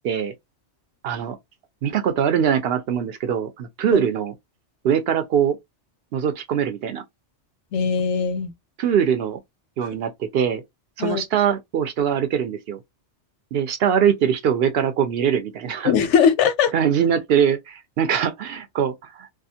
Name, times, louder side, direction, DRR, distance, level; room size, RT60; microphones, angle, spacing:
voice 1, 1.0-1.4 1.8-4.3 4.8-5.6 6.1-7.0 8.8-9.4 9.8-10.6 11.0-12.8 13.5-15.9 16.7-19.3, right 8 dB, 65° right, 0.7 m, -22 dB
voice 2, 7.7-8.5 11.0-11.2 15.8-16.7, left 7 dB, 85° left, 0.9 m, -20 dB
2.4 x 2.4 x 2.7 m
omnidirectional pair, 1.2 m